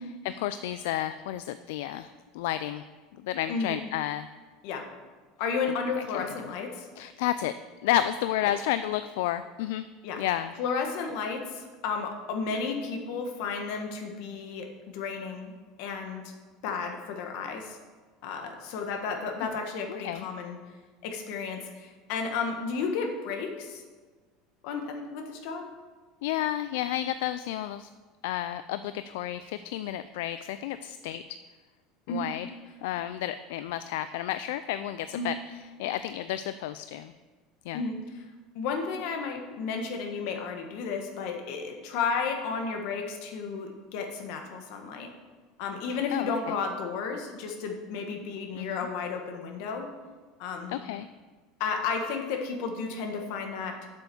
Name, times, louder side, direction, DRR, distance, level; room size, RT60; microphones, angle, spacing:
voice 1, 0.0-2.8 3.2-4.3 6.0-6.1 7.0-7.5 7.8-9.9 10.2-10.5 20.0-20.3 26.2-27.9 28.2-31.2 32.1-32.5 32.8-35.4 35.8-37.1 37.7-37.8 46.1-46.5 48.6-48.9 50.7-51.1, left 12 dB, 75° left, 12 dB, 0.3 m, -31 dB
voice 2, 5.4-6.9 8.5-8.6 10.0-10.2 10.6-15.5 15.8-16.3 16.6-17.8 18.2-20.6 21.0-23.8 24.6-25.7 32.1-32.3 35.1-35.3 37.7-38.2 38.5-45.1 45.6-49.9 50.4-50.8 51.6-53.9, left 5 dB, 55° left, 4 dB, 1.5 m, -33 dB
7.9 x 6.9 x 7.0 m, 1.3 s
cardioid pair, 175°, 0 cm